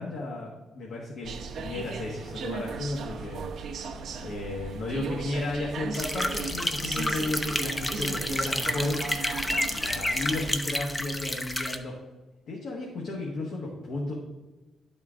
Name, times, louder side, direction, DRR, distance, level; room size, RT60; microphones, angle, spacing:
voice 1, 0.0-3.5 3.9-9.0 9.7-12.0 12.5-14.1, left 2 dB, 65° left, -2 dB, 1.3 m, -33 dB
sound 1, 1.2-10.5, right 5 dB, 65° right, 0.7 m, -37 dB
sound 2, 5.9-11.8, left 1 dB, 15° left, 0.6 m, -30 dB
10.0 x 4.4 x 3.6 m, 1.1 s
cardioid pair, 90°, 0 cm